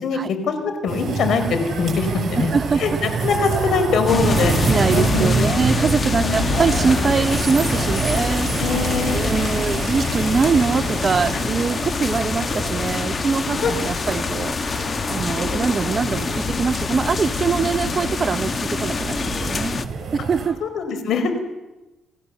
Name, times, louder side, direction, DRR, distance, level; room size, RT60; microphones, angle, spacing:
voice 1, 0.0-2.5 2.8-5.6 6.2-6.5 8.6-9.7 13.6-13.7 20.6-21.4, left 5 dB, 70° left, 8 dB, 4.0 m, -23 dB
sound 1, 0.9-20.5, right 5 dB, 60° right, 7.0 m, -27 dB
voice 2, 2.4-3.0 4.6-8.5 9.1-19.7 20.1-20.6, right 5 dB, 40° right, 15 dB, 0.7 m, -23 dB
sound 2, 4.1-19.9, left 5 dB, 40° left, 1.2 m, -25 dB
28.0 x 15.0 x 7.2 m, 1.1 s
cardioid pair, 90°, 0 cm